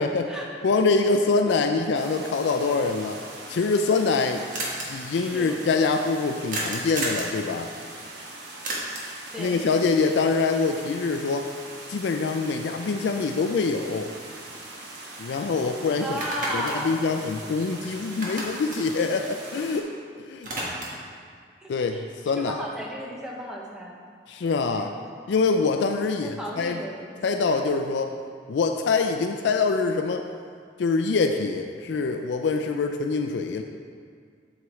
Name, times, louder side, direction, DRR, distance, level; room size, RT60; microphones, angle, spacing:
voice 1, 0.0-0.5 1.5-1.6 5.1-5.6 9.3-9.6 16.0-16.9 21.6-22.0 22.4-24.0 24.7-24.9 26.2-27.4, equal, 5° right, -3 dB, 0.8 m, -35 dB
voice 2, 0.6-3.2 3.5-4.4 4.9-7.7 9.4-11.5 11.9-14.1 15.2-16.2 16.5-19.9 20.3-20.5 21.7-22.6 24.3-24.9 25.3-26.8 27.2-28.1 28.5-30.2 30.8-33.6, left 4 dB, 75° left, 5 dB, 0.4 m, -24 dB
sound 1, 1.9-19.8, right 2 dB, 70° right, 1.1 m, -42 dB
sound 2, 4.5-4.9 6.5-7.3 8.6-9.2 13.4-13.5 13.9-15.0 15.3-15.5 16.0-17.8 18.1-19.9 20.2-21.1, right 1 dB, 45° right, 1.3 m, -32 dB
7.8 x 6.9 x 3.1 m, 2.1 s
head